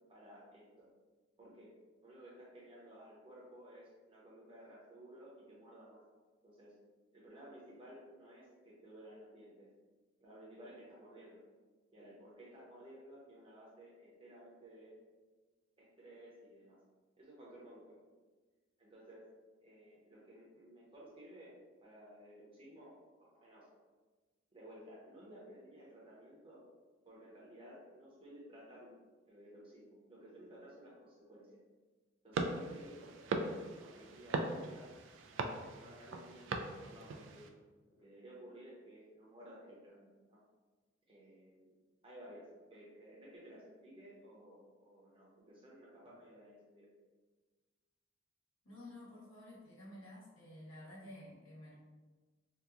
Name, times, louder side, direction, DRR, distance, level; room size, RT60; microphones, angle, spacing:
voice 1, 0.1-0.9 1.4-1.7 2.0-6.0 6.4-6.8 7.1-9.7 10.2-11.4 11.9-15.0 15.8-16.8 17.2-18.0 18.8-19.2 19.6-23.7 24.5-26.7 27.0-29.0 29.3-31.6 32.2-34.9 35.3-37.5 37.9-40.4 41.1-41.7 42.0-46.9, right 1 dB, 25° right, -6 dB, 0.8 m, -56 dB
sound 1, 32.3-37.5, right 3 dB, 65° right, 0.3 m, -40 dB
voice 2, 48.6-51.7, left 1 dB, 85° left, -6 dB, 1.1 m, -52 dB
2.8 x 2.2 x 3.6 m, 1.3 s
head